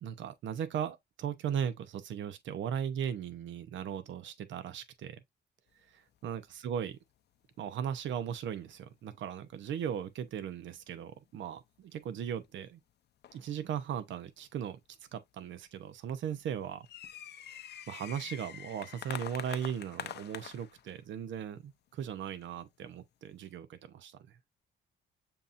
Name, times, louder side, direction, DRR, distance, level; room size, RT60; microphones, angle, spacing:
voice 1, 0.0-5.2 5.9-7.0 7.6-12.8 13.3-14.8 15.1-16.9 17.5-24.2, right 8 dB, 70° right, 0.7 m, -38 dB
sound 1, 6.1-6.5 6.8-6.9 7.5-7.6 8.4-8.9 9.5-9.9 10.6-11.4 12.0-12.1 12.4-12.5 13.2-13.8 14.4-14.5 15.1-15.2 15.4-15.8 16.3-21.0 21.6-21.7 22.3-22.7, left 10 dB, 55° left, 0.5 m, -45 dB
7.0 x 2.8 x 2.5 m
cardioid pair, 90°, 20 cm